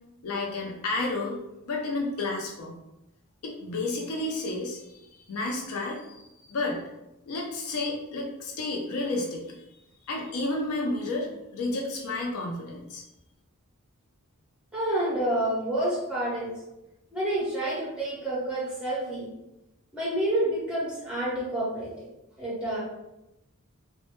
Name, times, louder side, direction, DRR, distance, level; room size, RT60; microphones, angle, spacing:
voice 1, 0.2-1.3 1.6-2.7 3.4-4.8 5.3-6.8 7.3-9.6 10.1-13.0, left 2 dB, 80° left, 0 dB, 0.4 m, -31 dB
voice 2, 14.7-16.5 17.1-19.3 19.9-21.9 22.4-22.8, right 1 dB, 5° right, -7 dB, 0.8 m, -28 dB
2.1 x 2.1 x 2.9 m, 0.93 s
head